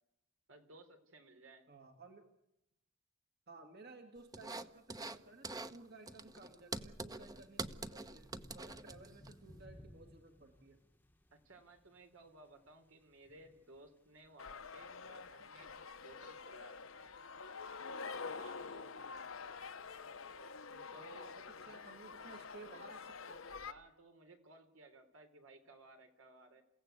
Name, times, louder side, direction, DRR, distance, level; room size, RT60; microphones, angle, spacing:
voice 1, 0.5-1.7 11.3-16.8 18.2-18.8 20.9-21.3 23.7-26.6, right 2 dB, 80° right, 6 dB, 3.9 m, -59 dB
voice 2, 1.7-2.3 3.5-10.8 18.7-18.9 20.7-23.6, right 3 dB, 50° right, 5 dB, 2.1 m, -57 dB
sound 1, 4.3-5.2 5.4-5.8 6.1-9.3, right 3 dB, 20° right, 1.0 m, -45 dB
sound 2, 7.3-22.6, equal, 10° left, 1.2 m, -65 dB
sound 3, 14.4-23.7, left 5 dB, 80° left, 1.3 m, -47 dB
29.5 x 16.5 x 8.1 m, 0.86 s
head